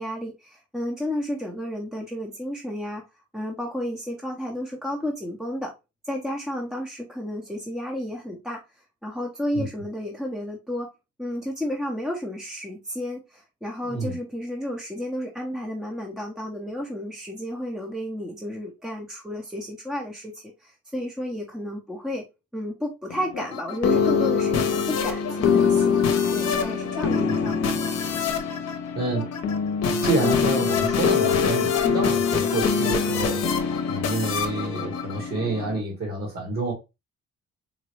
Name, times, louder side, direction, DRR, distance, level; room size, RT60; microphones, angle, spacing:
voice 1, 0.0-3.0 3.3-5.7 6.0-10.9 11.2-22.2 22.5-26.0 26.3-27.8, equal, ahead, 0.7 m, -32 dB
sound 1, 23.1-35.8, left 6 dB, 60° left, 0.8 m, -24 dB
voice 2, 28.9-29.3 30.0-33.5 33.9-36.7, right 2 dB, 55° right, 1.6 m, -28 dB
3.9 x 2.1 x 3.1 m
cardioid pair, 90°, 30 cm